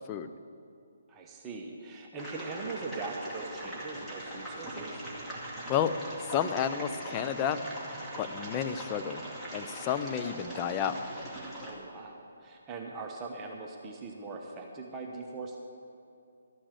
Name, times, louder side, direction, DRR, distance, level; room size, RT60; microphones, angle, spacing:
voice 1, 1.1-5.0 11.6-15.6, right 3 dB, 15° right, 0 dB, 1.1 m, -41 dB
sound 1, 2.2-11.7, right 1 dB, 5° left, 2.1 m, -41 dB
voice 2, 6.2-7.6 8.2-9.2 9.5-11.0, left 9 dB, 25° left, 9 dB, 0.5 m, -31 dB
13.0 x 6.0 x 8.2 m, 2.6 s
figure-of-eight pair, 140°, 0 cm